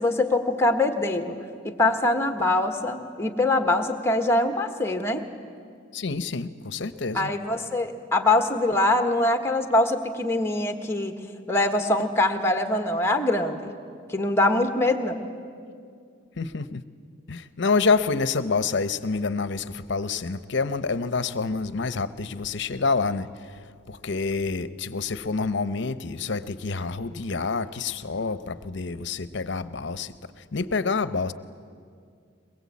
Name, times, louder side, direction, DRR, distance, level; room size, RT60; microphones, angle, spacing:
voice 1, 0.0-1.4 1.6-5.3 7.1-11.1 11.5-13.7 14.1-15.2, left 2 dB, 15° left, 6 dB, 1.4 m, -23 dB
voice 2, 5.9-7.3 16.4-16.8 17.3-23.6 23.9-31.3, left 4 dB, 65° left, 14 dB, 0.8 m, -27 dB
22.5 x 21.0 x 8.5 m, 2.2 s
head